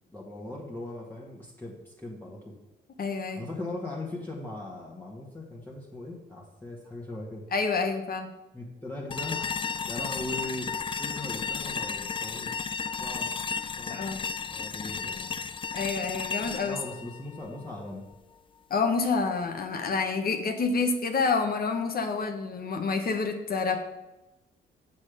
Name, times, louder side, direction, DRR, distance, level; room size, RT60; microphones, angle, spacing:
voice 1, 0.1-2.5 3.4-7.5 8.5-9.6 9.9-10.7 11.0-12.5 13.0-13.4 13.8-14.1 14.5-15.4 16.6-18.1, left 2 dB, 10° left, -4 dB, 1.6 m, -39 dB
voice 2, 3.0-3.5 7.5-8.3 13.9-14.2 15.7-16.8 18.7-23.8, left 4 dB, 50° left, 5 dB, 1.1 m, -28 dB
sound 1, 9.1-18.1, left 5 dB, 25° left, 0.4 m, -34 dB
7.3 x 6.5 x 5.0 m, 0.99 s
cardioid pair, 90°, 20 cm